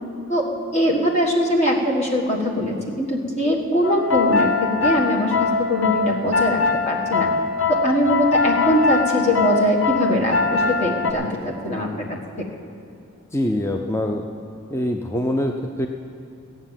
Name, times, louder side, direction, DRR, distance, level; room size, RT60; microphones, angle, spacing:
voice 1, 0.7-7.3 7.7-12.2, equal, 30° left, -1 dB, 1.6 m, -22 dB
sound 1, 3.8-11.1, left 4 dB, 65° left, 1.0 m, -22 dB
voice 2, 13.3-14.2 14.7-15.9, left 1 dB, 15° left, 3 dB, 0.5 m, -24 dB
15.5 x 8.9 x 7.4 m, 2.6 s
head